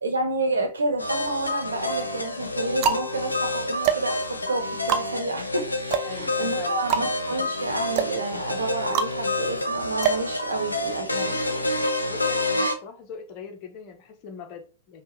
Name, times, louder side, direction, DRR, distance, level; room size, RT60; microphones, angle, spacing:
voice 1, 0.0-11.7, right 2 dB, 70° right, 1.0 m, -30 dB
sound 1, 0.9-1.6 2.3-11.0, right 7 dB, 35° right, 0.6 m, -29 dB
sound 2, 1.0-12.7, left 1 dB, 80° left, 0.7 m, -28 dB
voice 2, 6.0-6.8 12.1-15.0, left 6 dB, 35° left, 0.9 m, -41 dB
5.6 x 2.4 x 3.1 m
figure-of-eight pair, 100°, 0 cm